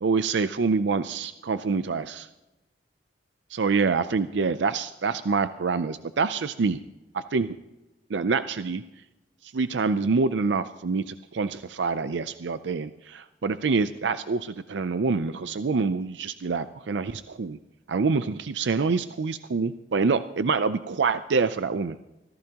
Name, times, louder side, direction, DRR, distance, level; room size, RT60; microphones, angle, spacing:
voice 1, 0.0-2.3 3.5-6.8 7.1-7.6 8.1-8.8 9.4-17.6 17.9-22.0, right 4 dB, 85° right, 12 dB, 0.5 m, -26 dB
24.0 x 15.5 x 2.9 m, 1.0 s
head